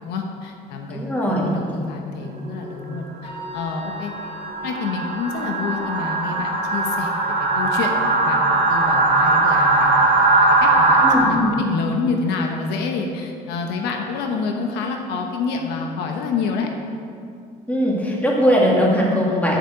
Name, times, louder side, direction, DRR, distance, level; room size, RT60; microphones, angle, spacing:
voice 1, 0.0-1.0 1.4-4.1 4.6-7.1 7.4-9.9 10.4-16.7, left 4 dB, 90° left, 2 dB, 1.1 m, -27 dB
voice 2, 0.9-1.8 11.0-11.6 17.7-19.6, equal, 10° left, -4 dB, 2.5 m, -20 dB
sound 1, 2.5-2.8 3.3-11.2, right 2 dB, 75° right, 2.2 m, -19 dB
Wind instrument woodwind instrument, 3.2-11.4, right 1 dB, 30° left, 1.6 m, -35 dB
7.4 x 6.9 x 7.7 m, 2.4 s
cardioid pair, 110°, 17 cm